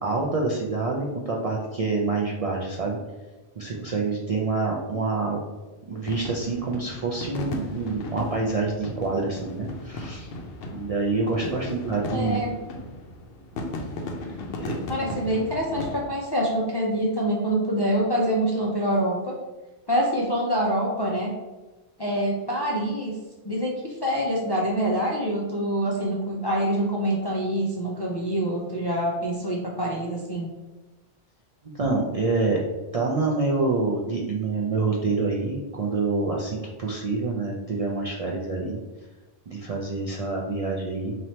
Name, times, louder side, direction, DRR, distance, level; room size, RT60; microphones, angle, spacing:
voice 1, 0.0-3.0 3.6-5.4 5.9-10.3 10.7-12.4 14.6-14.8 31.7-32.6 32.9-38.8 39.5-41.2, right 3 dB, 55° right, -3 dB, 0.4 m, -27 dB
sound 1, 6.0-16.1, left 1 dB, 65° left, 0.8 m, -36 dB
voice 2, 12.1-12.6 14.9-19.4 19.9-21.3 22.0-23.2 23.4-30.5, equal, 40° left, -3 dB, 0.3 m, -25 dB
3.0 x 2.7 x 4.2 m, 1.2 s
omnidirectional pair, 1.1 m